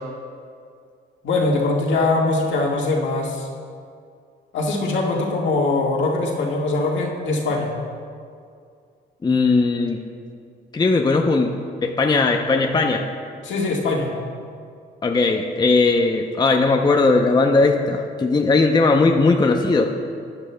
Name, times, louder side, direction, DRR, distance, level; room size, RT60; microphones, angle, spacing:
voice 1, 1.2-3.5 4.5-7.7 13.4-14.2, left 2 dB, 70° left, -2 dB, 1.7 m, -22 dB
voice 2, 9.2-10.0 10.7-11.5 11.8-13.0 15.0-19.9, left 3 dB, 20° left, 3 dB, 0.6 m, -18 dB
14.0 x 9.7 x 2.2 m, 2.3 s
cardioid pair, 90°, 20 cm